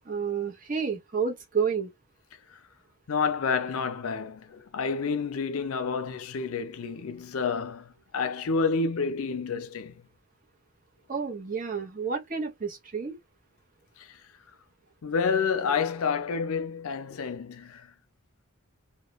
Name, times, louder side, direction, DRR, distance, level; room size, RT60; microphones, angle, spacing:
voice 1, 0.0-1.9 11.1-13.2, right 6 dB, 40° right, 0.7 m, -30 dB
voice 2, 3.1-10.0 14.0-14.2 15.0-17.9, left 5 dB, 85° left, 0.5 m, -29 dB
2.3 x 2.1 x 3.0 m
head